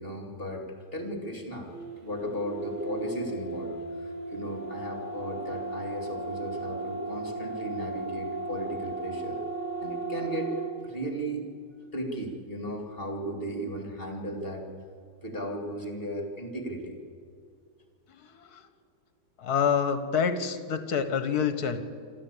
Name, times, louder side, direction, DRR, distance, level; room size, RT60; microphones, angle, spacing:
voice 1, 0.0-1.7 2.0-9.4 9.8-10.5 10.8-11.5 11.9-14.7 15.2-17.0, right 1 dB, 35° left, 3 dB, 2.7 m, -35 dB
sound 1, 1.6-10.7, right 3 dB, 15° right, 6.7 m, -36 dB
voice 2, 18.1-18.7 19.4-21.8, left 7 dB, 65° left, 10 dB, 1.8 m, -27 dB
26.5 x 13.5 x 8.5 m, 2.3 s
omnidirectional pair, 1.8 m